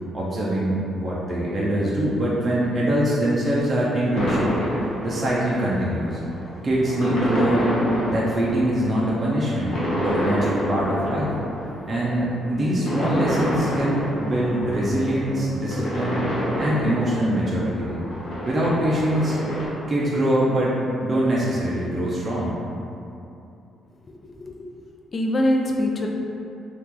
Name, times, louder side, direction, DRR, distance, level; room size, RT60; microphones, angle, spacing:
voice 1, 0.1-4.5 5.0-6.2 6.6-7.8 8.1-9.7 10.0-11.3 11.9-16.2 16.6-18.0 18.5-19.4 19.9-20.8 21.0-22.6, right 1 dB, 35° right, -6 dB, 0.5 m, -23 dB
sound 1, 4.1-19.7, equal, 65° left, 1.2 m, -28 dB
voice 2, 24.2-24.7 25.1-26.1, left 1 dB, 40° left, 0 dB, 0.4 m, -23 dB
2.9 x 2.4 x 3.6 m, 2.7 s
cardioid pair, 90°, 0 cm